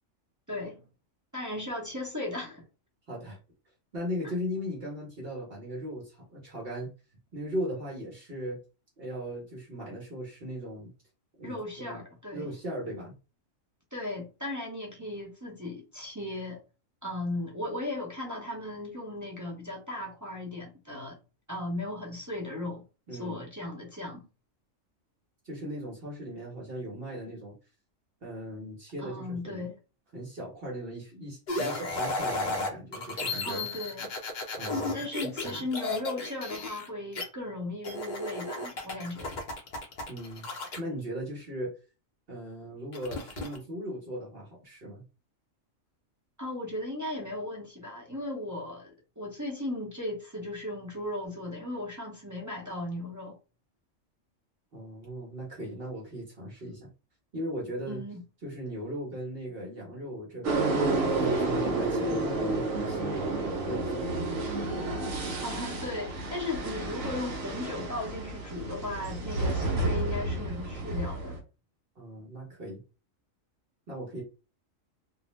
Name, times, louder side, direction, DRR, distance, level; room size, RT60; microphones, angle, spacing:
voice 1, 0.5-0.8 1.3-2.6 4.2-4.3 11.4-12.5 13.9-16.6 17.0-21.2 21.5-22.8 23.1-24.3 29.0-29.7 33.4-34.1 34.9-39.3 46.4-53.4 57.9-58.2 65.4-71.3, left 1 dB, 25° right, 0.4 m, -36 dB
voice 2, 3.1-3.4 3.9-6.9 7.3-8.6 9.0-10.9 11.4-12.0 12.3-13.2 23.1-23.4 25.4-27.5 28.2-29.7 30.1-33.6 34.6-35.6 40.1-40.5 40.8-41.8 42.3-45.0 54.7-56.9 57.3-58.0 58.4-64.4 72.0-72.8 73.9-74.2, equal, 50° right, 1.0 m, -38 dB
sound 1, 31.5-37.2 37.8-40.8 42.9-43.6, left 2 dB, 50° left, 0.6 m, -34 dB
sound 2, 60.4-71.4, right 2 dB, 80° right, 1.0 m, -30 dB
2.6 x 2.0 x 3.0 m
omnidirectional pair, 1.3 m